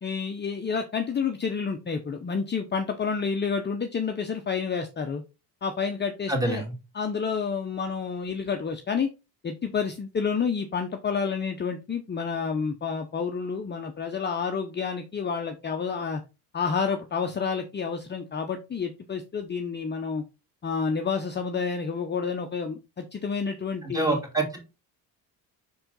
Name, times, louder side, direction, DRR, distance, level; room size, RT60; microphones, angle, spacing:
voice 1, 0.0-5.2 5.6-6.6 6.9-9.1 9.4-16.2 16.5-20.2 20.6-24.2, left 5 dB, 25° left, 5 dB, 0.8 m, -29 dB
voice 2, 6.3-6.7 23.8-24.6, right 2 dB, 10° right, 2 dB, 2.4 m, -26 dB
5.5 x 4.4 x 3.8 m, 0.28 s
supercardioid pair, 90°, 42 cm